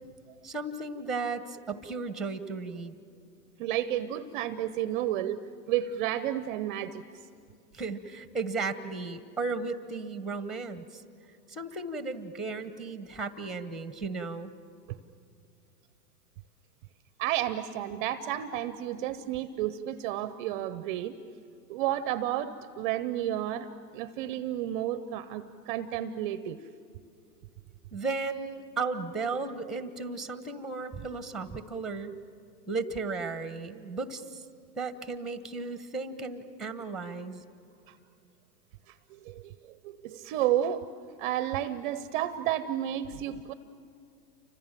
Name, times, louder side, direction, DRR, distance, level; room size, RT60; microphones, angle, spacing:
voice 1, 0.4-2.9 7.7-11.0 11.5-14.5 27.9-32.2 32.7-34.4 34.7-37.4, right 4 dB, ahead, 11 dB, 1.1 m, -35 dB
voice 2, 3.6-5.4 5.7-7.0 17.2-21.1 21.7-23.7 23.9-26.6 39.1-39.5 39.8-40.8 41.2-43.5, right 12 dB, 30° right, 13 dB, 0.7 m, -31 dB
29.5 x 25.0 x 7.6 m, 2.5 s
hypercardioid pair, 130°, 49 cm